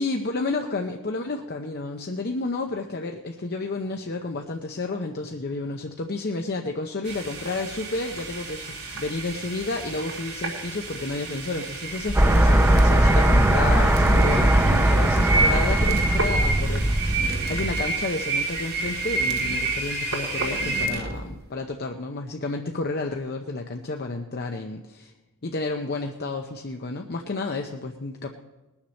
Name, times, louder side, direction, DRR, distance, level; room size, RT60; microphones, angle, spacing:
voice 1, 0.0-17.2 17.5-25.1 25.4-28.3, left 3 dB, 45° left, 3 dB, 0.7 m, -31 dB
sound 1, 7.0-20.9, right 3 dB, 80° right, 3.6 m, -30 dB
sound 2, 11.9-21.5, right 2 dB, 45° right, 0.9 m, -37 dB
sound 3, 12.1-18.0, right 1 dB, 10° right, 0.7 m, -20 dB
20.5 x 7.2 x 6.4 m, 1.1 s
head